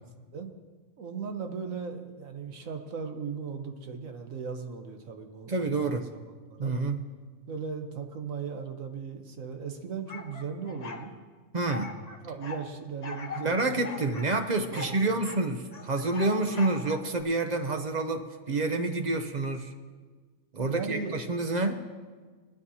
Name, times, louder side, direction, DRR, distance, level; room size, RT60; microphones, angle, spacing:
voice 1, 1.0-6.7 7.5-11.1 12.2-14.1 14.4-15.2 20.6-21.2, right 5 dB, 70° right, 5 dB, 1.4 m, -38 dB
voice 2, 5.5-6.0 6.6-7.0 11.5-11.9 13.4-19.7 20.5-21.8, right 2 dB, 40° right, 6 dB, 0.6 m, -28 dB
sound 1, 10.1-11.1 11.7-12.6 13.0-13.5 13.8-15.4 15.7-17.2, left 4 dB, 35° left, 0.8 m, -41 dB
19.0 x 12.0 x 2.8 m, 1.5 s
omnidirectional pair, 1.5 m